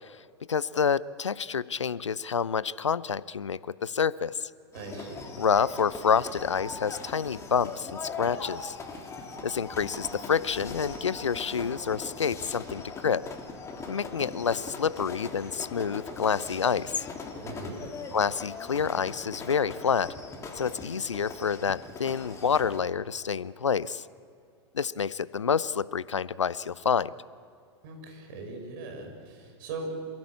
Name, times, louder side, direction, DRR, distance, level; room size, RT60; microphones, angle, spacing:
voice 1, 0.5-4.5 5.4-8.8 9.4-13.3 13.9-17.0 18.1-20.1 20.6-24.0 24.7-27.1, left 6 dB, 80° left, 20 dB, 0.6 m, -28 dB
sound 1, 4.7-22.8, left 4 dB, 20° left, 3.1 m, -40 dB
voice 2, 4.7-5.2 17.4-17.8 27.8-30.2, right 3 dB, 50° right, 3 dB, 5.9 m, -39 dB
27.5 x 16.5 x 8.6 m, 2.5 s
figure-of-eight pair, 95°, 15 cm